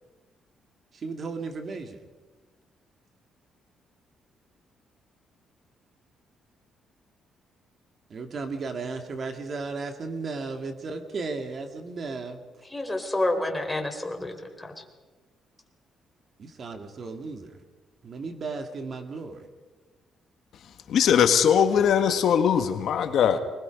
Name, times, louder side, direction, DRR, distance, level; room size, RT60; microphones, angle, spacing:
voice 1, 0.9-2.0 8.1-12.4 16.4-17.6 18.0-19.5, right 4 dB, 50° right, 2.2 m, -35 dB
voice 2, 12.7-14.7, left 1 dB, 10° left, 3.6 m, -29 dB
voice 3, 20.6-23.4, left 8 dB, 70° left, 1.5 m, -21 dB
24.5 x 21.0 x 5.3 m
cardioid pair, 90°, 0 cm